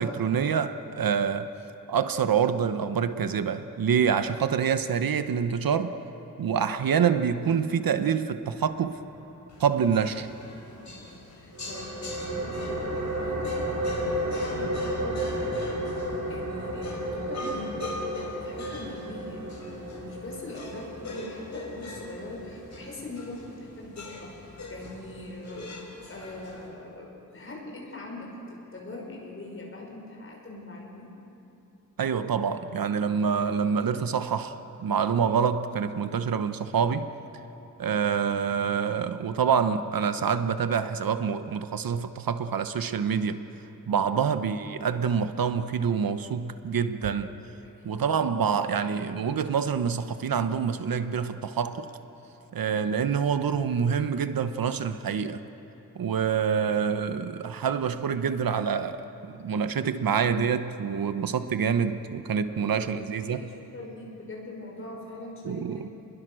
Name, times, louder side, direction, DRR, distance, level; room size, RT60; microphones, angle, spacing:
voice 1, 0.0-1.5 1.9-5.9 6.4-9.0 9.6-10.3 32.0-37.1 37.8-43.4 43.9-47.3 47.8-51.9 52.5-55.4 55.9-63.5 65.4-65.9, right 7 dB, 75° right, 10 dB, 1.0 m, -26 dB
sound 1, 9.5-26.7, left 2 dB, 55° left, 4.8 m, -43 dB
voice 2, 10.7-31.1 47.6-48.4 62.5-65.9, left 2 dB, 35° left, -1 dB, 5.5 m, -42 dB
sound 2, 11.5-22.9, right 1 dB, 50° right, 5.3 m, -33 dB
30.0 x 21.5 x 6.3 m, 2.9 s
wide cardioid pair, 170°, 35 cm